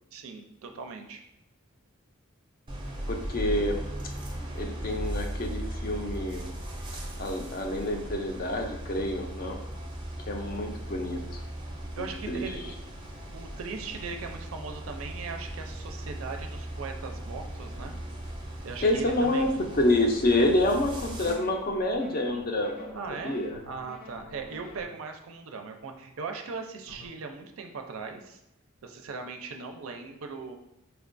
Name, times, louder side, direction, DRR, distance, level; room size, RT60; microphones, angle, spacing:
voice 1, 0.1-1.2 12.0-12.7 13.3-18.0 18.6-19.5 22.9-23.3 23.7-28.4 28.8-30.6, right 4 dB, 75° right, 5 dB, 0.4 m, -39 dB
sound 1, 2.7-21.3, right 1 dB, 20° right, 0.5 m, -38 dB
voice 2, 3.1-3.8 4.5-6.5 7.2-9.6 10.3-11.4 12.0-12.4 18.8-19.5 19.7-23.0 23.2-23.6, left 1 dB, 40° left, 3 dB, 0.4 m, -27 dB
sound 2, 21.0-24.9 26.9-27.1, left 1 dB, 85° left, 0.7 m, -47 dB
4.4 x 2.2 x 2.5 m, 0.89 s
head